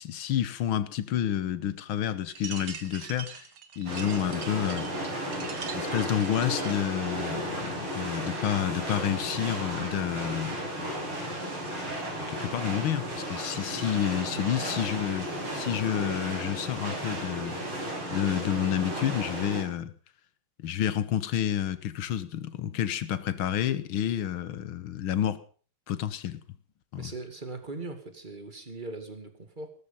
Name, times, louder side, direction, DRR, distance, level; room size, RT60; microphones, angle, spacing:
voice 1, 0.0-3.5 3.8-4.9 5.7-10.6 12.3-15.3 15.5-17.6 18.1-19.9 20.6-25.4 25.9-26.4 26.9-27.1, left 10 dB, 75° left, 1.8 m, -29 dB
sound 1, 2.3-6.9, right 7 dB, 75° right, 2.4 m, -43 dB
sound 2, 3.9-19.6, right 1 dB, 90° right, 6.5 m, -34 dB
voice 2, 27.0-29.7, right 3 dB, 20° right, 2.4 m, -40 dB
17.5 x 14.0 x 5.6 m
omnidirectional pair, 2.3 m